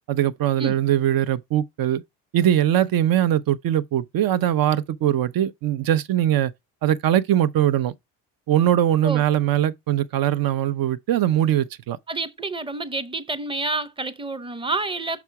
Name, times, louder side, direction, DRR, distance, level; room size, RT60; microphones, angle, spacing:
voice 1, 0.1-2.0 2.3-6.5 6.8-7.9 8.5-12.0, right 11 dB, 55° right, 0.7 m, -21 dB
voice 2, 12.1-15.2, right 3 dB, 15° right, 0.8 m, -28 dB
6.0 x 4.2 x 4.7 m
supercardioid pair, 80°, 40 cm